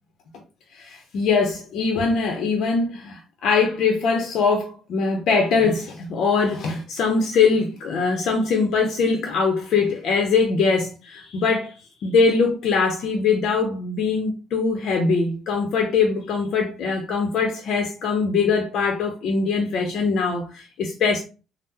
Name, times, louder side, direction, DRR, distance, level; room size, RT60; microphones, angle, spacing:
voice 1, 0.7-11.7 12.0-21.2, left 4 dB, 65° left, 0.6 m, -22 dB
3.5 x 2.1 x 2.7 m
supercardioid pair, 75°, 0 cm